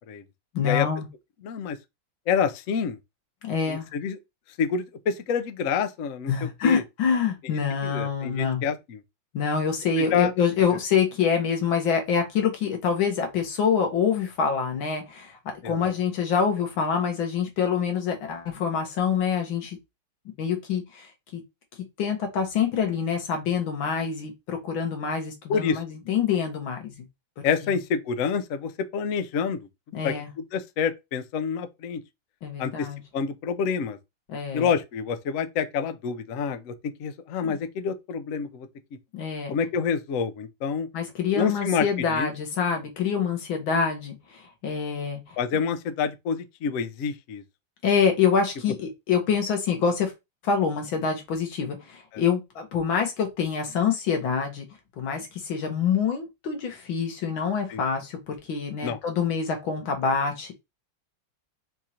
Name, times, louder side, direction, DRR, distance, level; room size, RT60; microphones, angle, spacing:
voice 1, 0.5-1.1 3.4-3.9 6.3-8.6 9.3-19.8 20.4-21.4 22.0-26.9 27.6-27.7 29.9-30.3 32.4-33.0 34.3-34.7 37.5-37.6 39.1-39.5 40.9-45.4 47.8-50.1 50.4-54.7 55.0-60.5, left 6 dB, 70° left, 2.0 m, -26 dB
voice 2, 1.4-1.8 2.3-3.0 3.7-4.2 4.6-6.8 7.8-9.0 10.1-10.3 15.6-15.9 25.5-25.8 27.4-29.6 30.0-30.1 30.5-32.0 32.6-32.9 33.1-34.0 34.5-36.7 37.0-38.7 39.5-40.9 41.4-41.8 42.1-42.3 45.4-47.4 52.1-52.2 57.7-57.8 58.8-59.0, left 6 dB, 90° left, 0.7 m, -27 dB
4.6 x 2.5 x 4.3 m
omnidirectional pair, 2.2 m